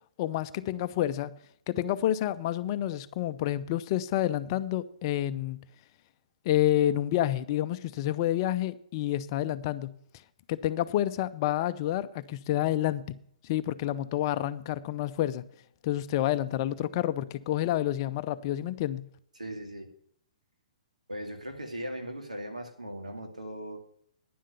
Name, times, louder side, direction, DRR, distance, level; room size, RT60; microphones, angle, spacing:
voice 1, 0.2-1.3 1.7-5.6 6.4-9.9 10.5-13.0 13.4-15.4 15.8-19.1, left 13 dB, 40° left, 0.7 m, -29 dB
voice 2, 19.4-19.9 21.1-23.8, equal, 90° right, 2.3 m, -38 dB
10.5 x 7.5 x 6.9 m
figure-of-eight pair, 120°, 4 cm